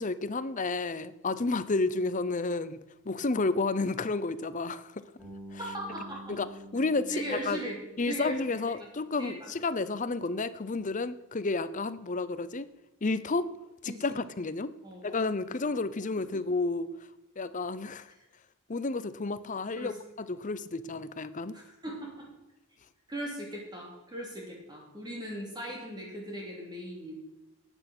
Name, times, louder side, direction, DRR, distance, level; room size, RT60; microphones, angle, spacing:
voice 1, 0.0-2.8 3.1-4.9 5.5-5.6 6.3-6.5 6.7-7.6 8.0-12.7 13.0-13.5 13.8-14.7 15.0-16.9 17.4-18.1 18.7-19.9 20.2-21.5, left 3 dB, 35° left, 14 dB, 0.7 m, -31 dB
Bass guitar, 5.2-9.1, right 1 dB, 5° right, 5.8 m, -48 dB
voice 2, 5.6-6.4 7.1-7.8 8.1-8.7 9.2-9.5 13.9-14.2 14.8-15.1 15.4-15.7 16.2-16.4 19.7-20.0 20.3-20.4 21.5-22.3 23.1-27.2, right 1 dB, 20° right, -1 dB, 2.9 m, -39 dB
13.0 x 9.0 x 6.1 m, 1.0 s
head